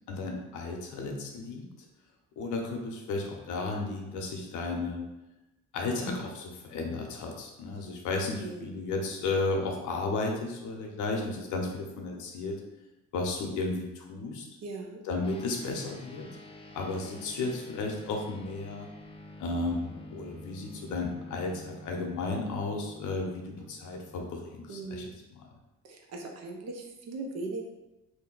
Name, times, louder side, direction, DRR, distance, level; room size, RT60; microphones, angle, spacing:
voice 1, 0.1-1.7 2.4-5.0 5.7-12.6 13.1-14.5 15.0-16.3 16.7-18.9 19.4-25.0 25.3-25.5, left 3 dB, 80° left, 1 dB, 0.7 m, -33 dB
voice 2, 8.4-8.7 14.6-15.0 24.7-25.1 25.8-27.7, right 3 dB, 60° right, 1 dB, 0.7 m, -39 dB
sound 1, 15.2-25.0, left 1 dB, 20° left, 0.4 m, -49 dB
2.6 x 2.2 x 3.8 m, 0.99 s
cardioid pair, 90°, 30 cm